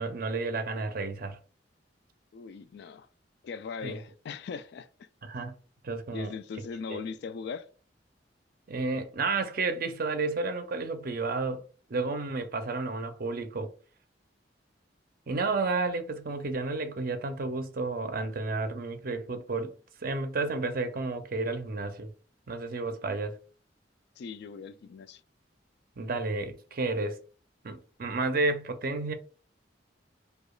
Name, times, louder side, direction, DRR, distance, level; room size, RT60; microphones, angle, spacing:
voice 1, 0.0-1.4 3.8-4.0 5.2-5.6 5.8-6.3 6.9-7.0 8.7-11.6 11.9-13.7 15.3-19.7 20.0-22.1 22.5-23.4 26.0-27.2 27.6-29.1, right 3 dB, 50° right, 0.5 m, -31 dB
voice 2, 2.3-3.1 3.4-5.1 6.1-7.7 24.2-25.2, left 5 dB, 60° left, 0.3 m, -39 dB
4.8 x 2.3 x 2.3 m
head